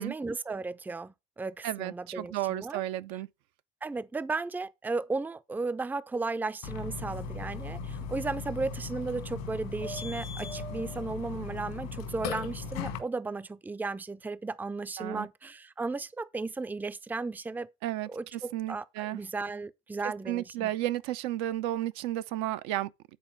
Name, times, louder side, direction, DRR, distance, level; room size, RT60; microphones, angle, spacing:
voice 1, 0.0-2.8 3.8-17.7 18.1-20.7, right 3 dB, 5° right, 0.5 m, -35 dB
voice 2, 1.6-3.3 15.0-15.3 17.8-19.2 20.3-22.9, right 14 dB, 65° right, 0.5 m, -33 dB
Burping eructation, 6.6-13.0, left 4 dB, 70° left, 1.9 m, -37 dB
9.1 x 4.3 x 5.2 m
hypercardioid pair, 55°, 30 cm